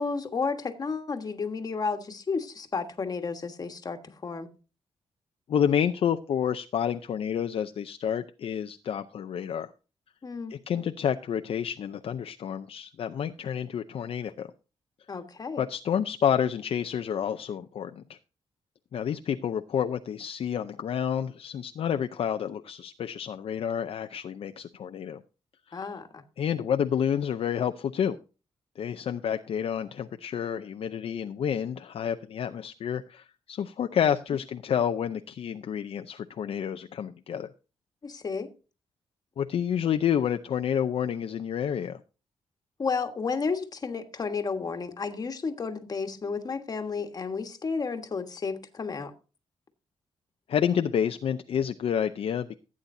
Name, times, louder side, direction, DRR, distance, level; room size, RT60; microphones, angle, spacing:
voice 1, 0.0-4.5 10.2-10.5 15.1-15.6 25.7-26.2 38.0-38.5 42.8-49.1, left 4 dB, 35° left, 1.4 m, -32 dB
voice 2, 5.5-9.7 10.5-14.5 15.6-18.2 18.9-25.2 25.7-25.9 26.4-28.2 28.8-37.5 39.4-42.0 50.5-52.6, left 8 dB, 60° left, 0.5 m, -29 dB
15.5 x 8.6 x 2.7 m
wide cardioid pair, 125°, 11 cm